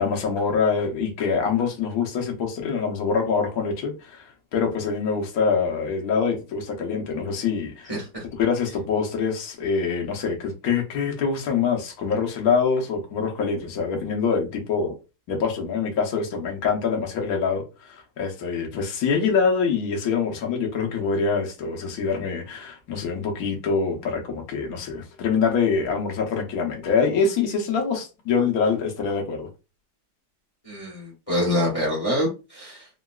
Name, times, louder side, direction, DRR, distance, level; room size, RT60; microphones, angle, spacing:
voice 1, 0.0-7.9 8.4-14.9 15.3-29.5, left 5 dB, 70° left, 0.8 m, -25 dB
voice 2, 7.9-8.2 30.6-32.9, left 1 dB, 40° left, 0.5 m, -26 dB
3.7 x 2.3 x 2.3 m
omnidirectional pair, 2.4 m